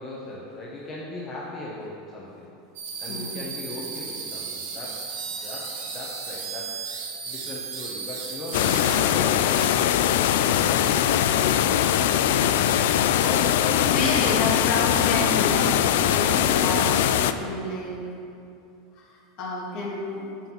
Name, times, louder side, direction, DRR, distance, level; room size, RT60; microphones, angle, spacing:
voice 1, 0.0-2.5 3.0-9.9 10.1-11.8 13.0-14.5, left 2 dB, 35° left, -5 dB, 1.5 m, -37 dB
sound 1, 2.8-9.0 9.5-9.7, right 5 dB, 80° right, 1.8 m, -35 dB
sound 2, 8.5-17.3, left 10 dB, 75° left, 0.4 m, -21 dB
voice 2, 13.9-15.8 16.1-17.1 17.4-18.0 19.0-20.2, left 2 dB, 55° left, -4 dB, 2.4 m, -30 dB
10.5 x 3.9 x 7.6 m, 2.6 s
hypercardioid pair, 105°, 0 cm